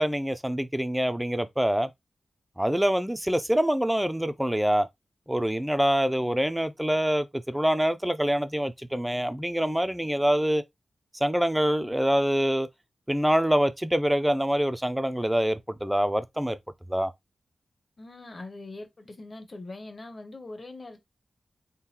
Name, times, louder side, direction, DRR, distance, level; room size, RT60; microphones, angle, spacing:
voice 1, 0.0-1.9 2.6-4.9 5.3-10.6 11.2-12.7 13.1-16.6 16.9-17.1, equal, 5° right, 0.5 m, -25 dB
voice 2, 18.0-21.0, left 2 dB, 40° left, 1.0 m, -42 dB
3.8 x 3.6 x 2.9 m
wide cardioid pair, 95°, 0 cm